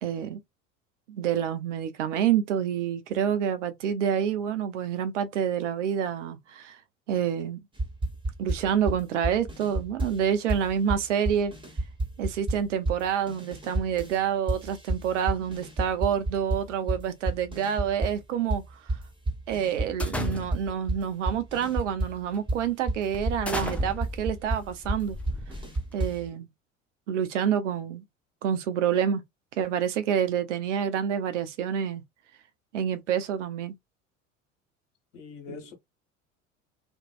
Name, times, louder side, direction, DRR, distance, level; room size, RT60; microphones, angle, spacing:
voice 1, 0.0-0.4 1.1-6.8 7.1-7.6 8.4-11.5 12.2-18.6 19.5-25.2 25.9-26.5 27.1-28.0 28.4-29.2 29.5-32.0 32.7-33.7 35.5-35.6, right 8 dB, 65° right, 0.6 m, -28 dB
sound 1, 7.7-10.2 10.5-14.2 14.5-18.2 18.5-26.3, right 2 dB, 15° right, 1.1 m, -31 dB
sound 2, 20.0-20.8 21.6-21.9 22.3-22.5 23.1-26.0, left 2 dB, 5° left, 0.4 m, -35 dB
voice 2, 35.1-35.7, left 7 dB, 65° left, 1.2 m, -44 dB
2.5 x 2.2 x 2.3 m
figure-of-eight pair, 65°, 38 cm